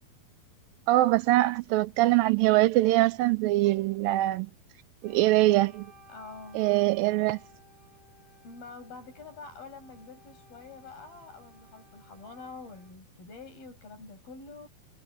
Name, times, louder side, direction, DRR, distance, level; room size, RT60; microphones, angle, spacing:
voice 1, 0.9-4.5 5.0-5.9 6.6-7.4, right 17 dB, 85° right, 2.1 m, -23 dB
Wind instrument woodwind instrument, 5.0-13.0, equal, 35° right, 7.6 m, -57 dB
voice 2, 6.1-7.0 8.4-14.7, left 4 dB, 65° left, 9.6 m, -46 dB
omnidirectional pair, 4.6 m